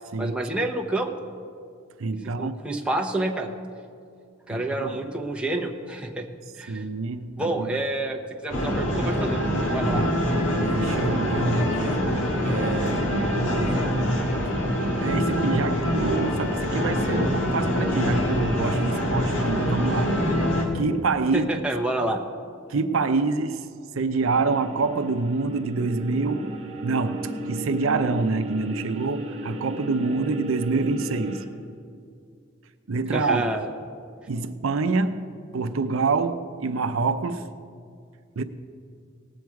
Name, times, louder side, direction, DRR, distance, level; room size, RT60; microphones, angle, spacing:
voice 1, 0.2-1.1 2.4-3.5 4.5-6.3 6.6-6.8 7.4-9.4 9.7-10.0 13.4-13.9 21.3-22.2 33.1-33.7, right 2 dB, 5° right, 0.9 m, -28 dB
voice 2, 2.0-2.6 4.5-5.0 6.7-7.8 9.9-10.1 10.5-12.1 12.4-13.1 15.0-20.2 20.7-21.6 22.7-23.7 23.9-26.5 26.8-31.4 32.9-33.5 34.3-35.3 35.5-37.5 38.4-38.5, right 3 dB, 90° right, 0.6 m, -26 dB
sound 1, 8.5-20.6, equal, 65° left, 1.7 m, -24 dB
sound 2, 24.2-31.5, right 1 dB, 35° right, 1.3 m, -35 dB
18.5 x 7.8 x 4.7 m
head